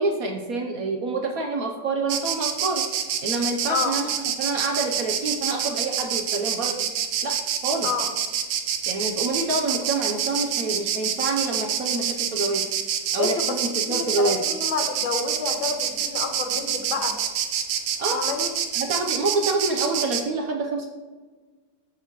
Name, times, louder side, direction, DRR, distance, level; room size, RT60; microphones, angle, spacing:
voice 1, 0.0-2.8 3.2-6.8 7.2-7.4 7.6-7.9 8.9-12.6 13.1-14.4 18.0-18.2 18.7-20.9, right 3 dB, 60° right, 2 dB, 1.0 m, -27 dB
Insect, 2.1-20.2, right 9 dB, 85° right, 1.5 m, -26 dB
voice 2, 13.2-17.2 18.1-18.5, left 5 dB, 90° left, 4 dB, 1.9 m, -29 dB
14.0 x 5.2 x 3.0 m, 1.4 s
omnidirectional pair, 2.1 m